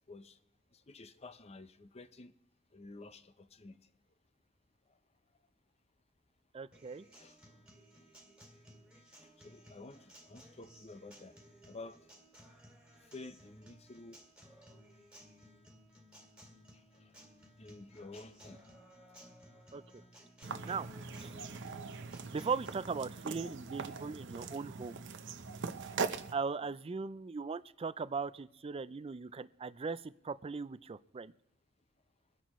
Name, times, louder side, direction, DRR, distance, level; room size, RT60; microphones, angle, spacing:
voice 1, 0.1-0.4 0.7-2.3 2.7-3.9 4.9-5.0 7.1-7.4 9.4-11.4 11.7-12.2 13.0-14.2 16.7-17.2 17.6-18.6, left 2 dB, 30° left, 11 dB, 0.7 m, -51 dB
voice 2, 6.5-7.0 19.7-19.8 20.6-20.9 21.2-21.4 22.3-25.0 26.3-31.3, right 5 dB, 30° right, 16 dB, 0.4 m, -38 dB
Acoustic guitar, 6.7-22.7, equal, 5° right, 2.4 m, -58 dB
sound 1, 20.4-26.3, right 5 dB, 65° right, 0.8 m, -41 dB
24.0 x 10.0 x 3.1 m, 0.79 s
head